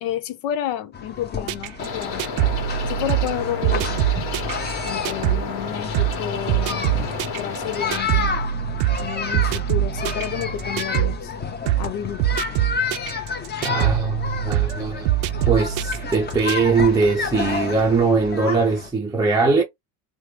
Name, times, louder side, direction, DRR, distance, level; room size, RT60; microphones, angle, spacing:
voice 1, 0.0-2.2 2.9-4.1 4.8-7.0 7.4-8.4 9.0-11.3 11.8-12.3, left 10 dB, 75° left, 0.9 m, -30 dB
sound 1, 0.9-18.9, left 5 dB, 20° left, 0.8 m, -30 dB
sound 2, 1.5-5.5 5.9-6.2 6.5-11.2 11.7-11.9 12.2-16.5, right 14 dB, 60° right, 0.5 m, -24 dB
sound 3, 1.8-8.0, left 5 dB, 55° left, 1.4 m, -32 dB
voice 2, 13.6-15.1 15.4-19.6, right 4 dB, 10° right, 0.6 m, -21 dB
3.4 x 2.1 x 3.2 m
supercardioid pair, 100°, 49 cm